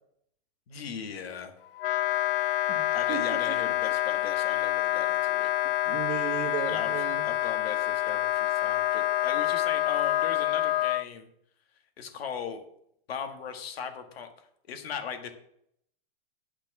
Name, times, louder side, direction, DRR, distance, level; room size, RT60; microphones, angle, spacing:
voice 1, 0.7-1.5 2.9-5.5 6.7-6.9 7.2-11.3 12.0-12.6 13.1-14.3 14.7-15.3, left 7 dB, 85° left, 6 dB, 1.8 m, -38 dB
Wind instrument woodwind instrument, 1.8-11.0, left 15 dB, 65° left, 0.5 m, -27 dB
voice 2, 2.7-3.7 5.8-7.3, right 10 dB, 35° right, -3 dB, 1.4 m, -36 dB
9.1 x 5.9 x 5.9 m, 0.72 s
supercardioid pair, 145°, 30 cm